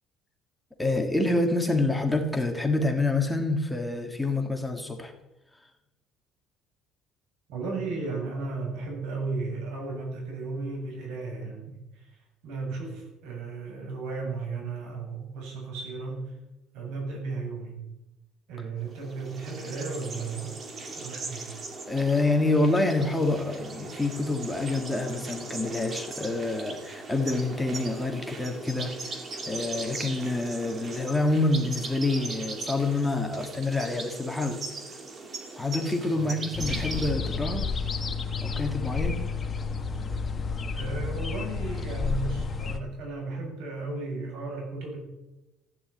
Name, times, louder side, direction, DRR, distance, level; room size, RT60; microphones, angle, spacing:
voice 1, 0.8-5.1 21.9-34.6 35.5-37.7 38.4-39.2, left 2 dB, 5° left, 3 dB, 1.7 m, -27 dB
voice 2, 7.5-12.2 12.4-16.3 16.7-17.8 18.5-20.6 20.9-21.4 36.1-36.4 40.7-45.0, right 3 dB, 80° right, 1 dB, 7.9 m, -35 dB
sound 1, 18.9-37.1, right 3 dB, 30° right, 2.2 m, -39 dB
sound 2, 36.5-42.8, left 4 dB, 20° left, 1.4 m, -31 dB
15.5 x 9.8 x 8.5 m, 0.99 s
cardioid pair, 160°, 0 cm